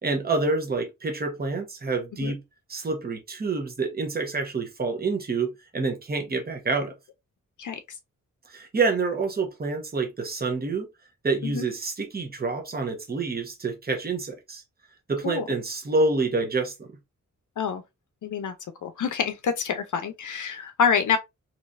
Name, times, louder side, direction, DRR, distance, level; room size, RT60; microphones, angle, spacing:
voice 1, 0.0-2.4 2.7-6.9 8.5-10.9 11.2-14.6 15.1-16.9, right 3 dB, 30° right, 0.9 m, -27 dB
voice 2, 7.6-8.0 11.4-11.6 15.2-15.4 17.6-17.8 18.2-18.5 18.8-21.2, left 6 dB, 75° left, 0.6 m, -27 dB
3.9 x 2.9 x 2.5 m
wide cardioid pair, 140°, 31 cm